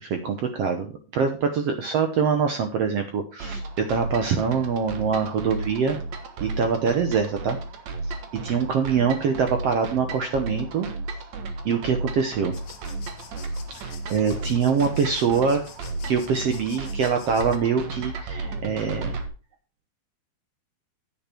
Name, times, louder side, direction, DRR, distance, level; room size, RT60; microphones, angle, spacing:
voice 1, 0.0-6.0 6.4-7.6 8.0-10.9 11.6-12.5 13.7-15.6 16.1-19.2, right 6 dB, 75° right, 6 dB, 1.4 m, -24 dB
sound 1, 3.4-19.3, right 3 dB, 60° right, 2.3 m, -34 dB
sound 2, 12.5-17.6, left 7 dB, 65° left, 2.4 m, -46 dB
9.5 x 9.1 x 4.4 m, 0.35 s
omnidirectional pair, 4.2 m